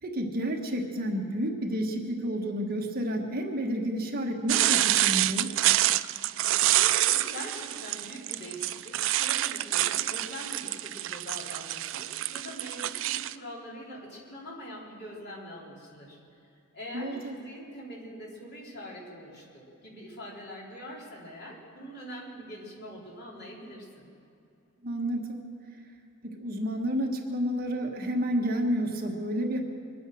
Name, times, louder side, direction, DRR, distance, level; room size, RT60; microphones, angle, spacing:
voice 1, 0.0-5.6 16.9-17.3 24.8-25.4 26.2-29.6, equal, 45° right, 2 dB, 1.4 m, -30 dB
sound 1, 4.5-13.3, right 14 dB, 65° right, 0.4 m, -27 dB
voice 2, 6.6-16.2 16.7-24.1, equal, 50° left, -5 dB, 4.1 m, -43 dB
24.0 x 9.3 x 6.3 m, 2.7 s
head